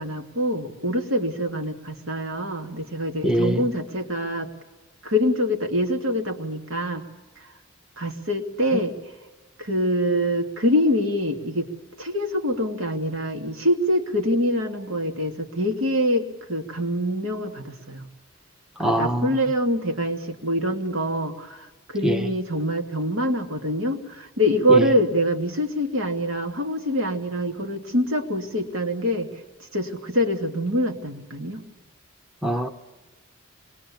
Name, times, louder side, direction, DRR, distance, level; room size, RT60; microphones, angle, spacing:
voice 1, 0.0-4.5 5.0-7.0 8.0-8.9 9.6-11.7 12.0-18.0 18.8-29.3 29.7-31.6, equal, 75° right, 2.6 m, -25 dB
voice 2, 3.2-3.7 8.7-8.8 18.8-19.4 22.0-22.3 24.7-24.9 32.4-32.7, right 1 dB, 5° right, 0.8 m, -23 dB
26.5 x 21.0 x 8.6 m
head